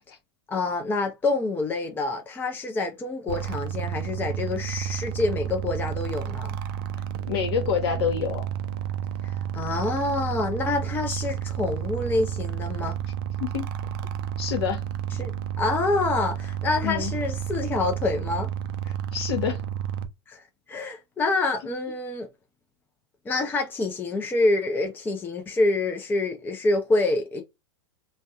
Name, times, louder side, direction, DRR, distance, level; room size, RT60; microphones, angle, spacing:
voice 1, 0.5-6.5 9.5-13.0 15.2-15.3 15.6-18.5 20.3-20.4 20.7-22.3 23.3-27.4, left 2 dB, 15° left, 0.6 m, -26 dB
sound 1, 3.3-20.1, right 10 dB, 55° right, 0.5 m, -31 dB
voice 2, 7.3-8.5 13.4-13.6 14.4-14.8 16.8-17.1 18.9-19.6, left 8 dB, 65° left, 1.2 m, -27 dB
3.2 x 2.2 x 2.6 m
hypercardioid pair, 100°, 14 cm